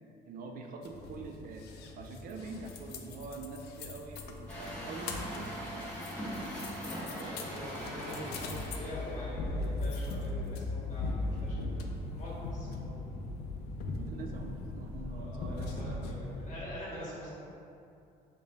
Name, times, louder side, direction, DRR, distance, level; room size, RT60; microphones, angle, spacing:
voice 1, 0.3-1.7 2.0-6.0 7.2-7.4 13.9-16.2, right 3 dB, 55° right, 3 dB, 0.4 m, -45 dB
sound 1, 0.8-16.6, left 2 dB, 75° left, 0.4 m, -39 dB
Truck, 4.5-9.3, equal, 5° left, 1.0 m, -41 dB
voice 2, 6.9-13.2 15.1-17.4, equal, 45° left, -7 dB, 1.3 m, -44 dB
4.8 x 2.2 x 2.7 m, 2.6 s
cardioid pair, 110°, 17 cm